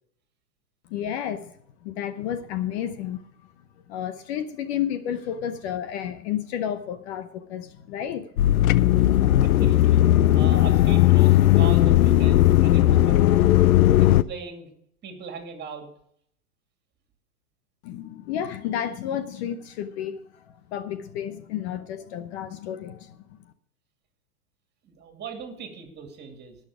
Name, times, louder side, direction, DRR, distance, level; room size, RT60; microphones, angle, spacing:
voice 1, 0.9-1.5 1.8-3.2 3.9-8.3 17.8-23.2, left 10 dB, 45° left, 0.9 m, -31 dB
sound 1, 8.4-14.2, left 14 dB, 65° left, 0.6 m, -17 dB
voice 2, 9.2-10.0 10.3-13.5 14.0-14.7 15.0-15.9 24.8-26.6, right 5 dB, 20° right, 2.7 m, -39 dB
18.5 x 6.6 x 4.9 m
hypercardioid pair, 120°, 46 cm